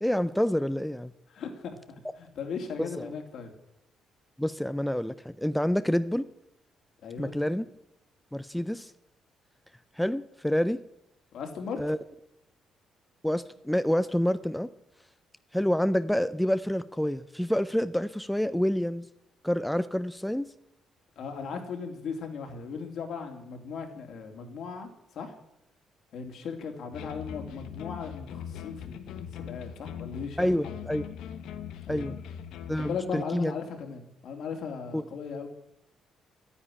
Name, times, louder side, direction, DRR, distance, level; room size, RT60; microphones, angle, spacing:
voice 1, 0.0-1.1 3.0-3.1 4.4-6.3 7.2-7.6 8.3-8.9 10.0-10.8 11.8-12.0 13.2-14.7 15.5-19.1 19.4-20.5 30.4-31.1 31.9-32.2 32.7-33.5 34.9-35.0, equal, 5° left, 13 dB, 0.5 m, -28 dB
voice 2, 1.3-3.5 7.0-7.3 11.3-11.8 21.2-25.3 26.1-30.7 31.9-32.1 32.8-35.5, left 5 dB, 65° left, 4 dB, 3.0 m, -37 dB
sound 1, 26.9-33.0, left 9 dB, 85° left, 1.2 m, -40 dB
11.5 x 9.9 x 10.0 m, 0.85 s
cardioid pair, 125°, 0 cm